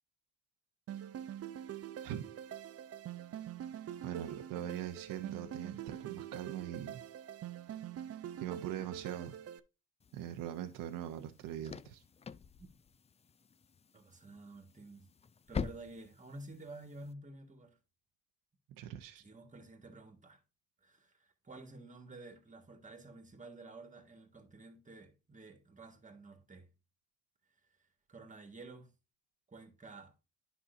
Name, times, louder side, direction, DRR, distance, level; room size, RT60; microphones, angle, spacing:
sound 1, 0.9-9.6, right 10 dB, 45° right, 0.6 m, -45 dB
voice 1, 4.0-7.0 8.4-9.4 10.1-12.0 18.7-19.2, right 11 dB, 80° right, 0.8 m, -42 dB
sound 2, 10.0-17.1, left 6 dB, 20° left, 0.4 m, -46 dB
voice 2, 13.9-15.1 15.5-17.8 19.2-20.4 20.8-26.7 28.1-28.9 29.5-30.1, right 2 dB, 25° right, 1.7 m, -51 dB
10.0 x 5.5 x 2.6 m
supercardioid pair, 80°, 33 cm